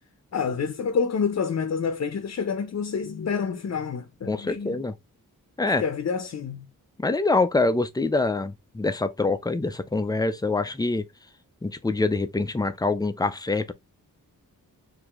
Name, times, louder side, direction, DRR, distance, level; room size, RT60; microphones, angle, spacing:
voice 1, 0.3-4.9 5.6-6.7, left 6 dB, 50° left, 0.6 m, -28 dB
voice 2, 4.3-4.9 5.6-5.8 7.0-11.0 11.6-13.7, left 3 dB, 10° left, 0.3 m, -25 dB
4.8 x 2.6 x 3.5 m
wide cardioid pair, 180°, 35 cm